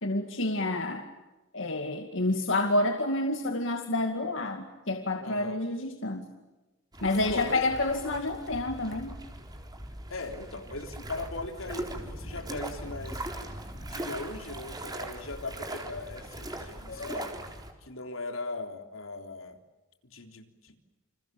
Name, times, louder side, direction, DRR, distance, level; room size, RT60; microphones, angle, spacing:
voice 1, 0.0-1.1 1.5-6.3 7.0-9.2 16.9-17.3, left 2 dB, 70° left, 5 dB, 2.3 m, -29 dB
voice 2, 5.2-5.6 7.3-7.6 10.1-13.6 13.9-17.3 17.8-19.6 20.0-20.7, left 2 dB, 85° left, 5 dB, 3.7 m, -39 dB
sound 1, 6.9-17.7, right 1 dB, 20° right, 3.9 m, -40 dB
29.5 x 27.5 x 7.0 m, 1.1 s
head